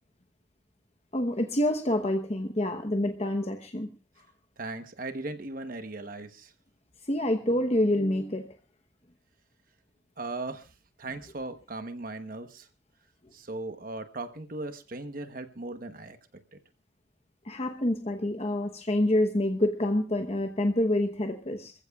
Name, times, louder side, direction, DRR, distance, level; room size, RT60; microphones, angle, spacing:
voice 1, 1.1-3.9 7.1-8.5 17.4-21.7, left 1 dB, 35° left, 1.0 m, -27 dB
voice 2, 4.6-6.5 10.2-10.7 11.0-12.7 13.3-16.2, right 2 dB, 50° right, 1.1 m, -38 dB
27.0 x 15.0 x 2.4 m
head